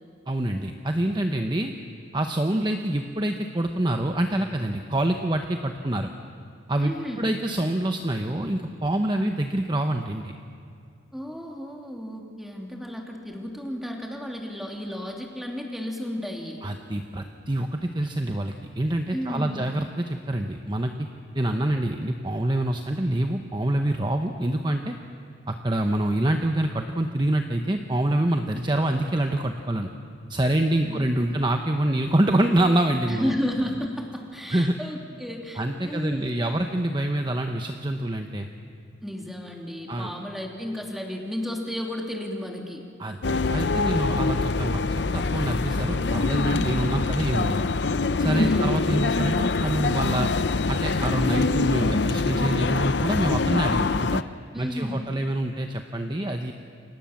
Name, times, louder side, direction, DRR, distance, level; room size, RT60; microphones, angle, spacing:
voice 1, 0.3-1.7 2.1-6.1 6.7-10.3 16.6-21.1 21.3-25.0 25.5-29.9 30.3-33.3 34.5-34.8 35.6-38.5 39.9-40.1 43.0-47.7 48.2-50.3 50.7-54.2 54.5-56.5, right 1 dB, 25° right, 4 dB, 1.0 m, -26 dB
voice 2, 6.8-7.3 11.1-16.6 19.1-19.7 30.8-31.4 33.1-36.3 39.0-42.8 48.3-48.9 54.5-55.1, equal, ahead, 0 dB, 3.0 m, -33 dB
sound 1, 43.2-54.2, left 3 dB, 60° left, 0.6 m, -24 dB
29.5 x 25.5 x 7.3 m, 2.4 s
head